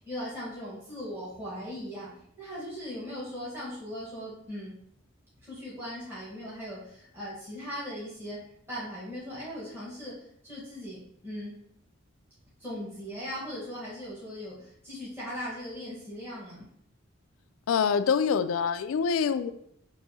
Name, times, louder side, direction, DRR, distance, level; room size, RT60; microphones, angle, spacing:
voice 1, 0.0-2.1 2.4-4.7 5.4-10.1 10.4-11.6 12.6-16.7, equal, 10° right, -9 dB, 1.2 m, -39 dB
voice 2, 17.7-19.5, left 6 dB, 75° left, 11 dB, 0.3 m, -25 dB
6.7 x 2.6 x 2.7 m, 0.72 s
head